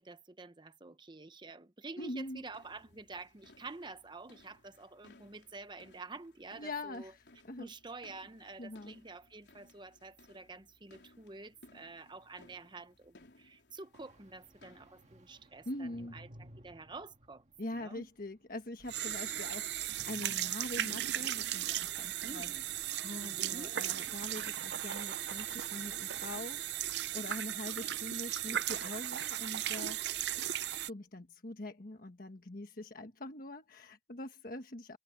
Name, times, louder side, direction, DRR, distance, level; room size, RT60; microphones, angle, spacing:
voice 1, 0.0-7.1 7.6-17.4 17.7-18.1 22.2-22.7 23.2-23.8, right 3 dB, 25° right, 1.1 m, -49 dB
sound 1, 2.0-15.5, left 2 dB, 80° left, 4.0 m, -63 dB
voice 2, 2.0-2.4 6.6-7.7 8.6-8.9 15.6-16.2 17.6-22.5 23.0-30.0 30.8-35.0, left 2 dB, 55° left, 1.4 m, -43 dB
sound 2, 14.1-18.4 18.7-18.9 19.9-21.6, equal, 40° right, 1.8 m, -58 dB
sound 3, 18.8-30.9, right 12 dB, 75° right, 0.6 m, -37 dB
head